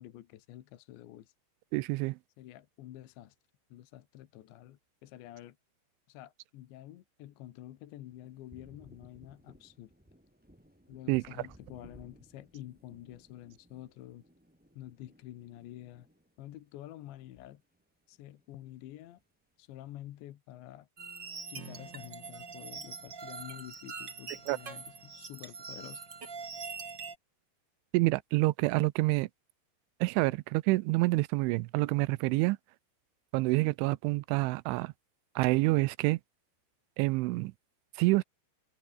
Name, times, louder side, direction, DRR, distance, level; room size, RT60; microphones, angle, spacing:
voice 1, 0.0-1.3 2.4-3.4 3.7-5.6 6.1-9.9 10.9-14.2 14.8-16.1 16.4-17.6 18.1-19.2 19.6-20.9 21.5-26.0, left 14 dB, 75° left, 3.6 m, -48 dB
voice 2, 1.7-2.2 11.1-11.2 24.5-24.6 27.9-29.3 30.0-32.6 33.3-34.9 35.4-36.2 37.0-37.5 38.0-38.2, right 22 dB, 90° right, 3.1 m, -27 dB
Thunder, 8.0-17.8 18.1-19.3, equal, ahead, 5.2 m, -60 dB
sound 1, 21.0-27.1, right 5 dB, 30° right, 2.7 m, -43 dB
omnidirectional pair, 5.4 m